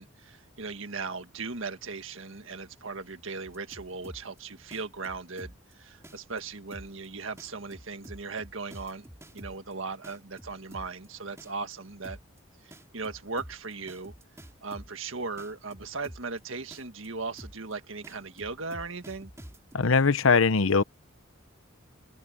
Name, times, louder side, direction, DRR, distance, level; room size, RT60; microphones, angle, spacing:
voice 1, 0.0-9.1 9.3-12.2 12.6-14.1 14.6-19.3, right 4 dB, 70° right, 1.8 m, -38 dB
sound 1, 3.5-4.4 4.7-5.7 6.0-6.4 6.7-7.1 7.4-9.7 10.0-11.1 11.4-11.7 12.0-12.4 12.7-15.1 15.4-16.4 16.7-17.1 17.4-17.7 18.0-19.8, equal, 15° right, 3.2 m, -47 dB
voice 2, 19.7-20.8, left 5 dB, 75° left, 0.8 m, -21 dB
open air
head